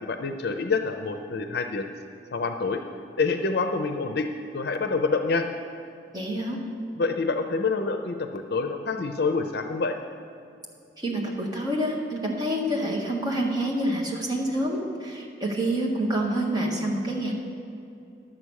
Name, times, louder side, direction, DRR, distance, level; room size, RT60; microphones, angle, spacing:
voice 1, 0.0-1.9 2.3-2.8 3.2-4.3 4.5-5.5 7.0-10.0, left 4 dB, 60° left, 6 dB, 0.6 m, -27 dB
voice 2, 6.1-6.6 11.0-17.3, right 1 dB, 25° right, -2 dB, 1.5 m, -27 dB
11.0 x 7.7 x 6.4 m, 2.7 s
head